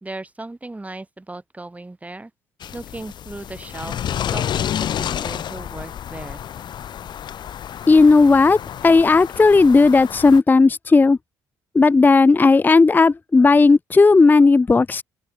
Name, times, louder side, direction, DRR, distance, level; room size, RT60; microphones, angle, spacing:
voice 1, 0.0-2.3 2.7-4.0 4.3-6.4, right 2 dB, 15° right, 2.7 m, -36 dB
sound 1, 2.6-10.4, left 9 dB, 60° left, 1.3 m, -30 dB
voice 2, 7.9-11.2 11.7-15.0, left 3 dB, 20° left, 0.5 m, -14 dB
supercardioid pair, 60°, 9 cm